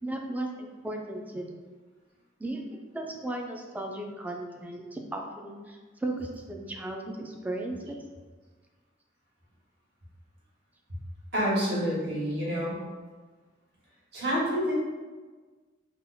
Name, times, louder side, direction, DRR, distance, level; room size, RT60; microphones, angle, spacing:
voice 1, 0.0-1.5 2.4-8.0, right 1 dB, 10° right, 2 dB, 0.3 m, -36 dB
voice 2, 11.3-12.7 14.1-14.7, equal, 60° right, -7 dB, 1.3 m, -28 dB
2.8 x 2.3 x 4.1 m, 1.4 s
head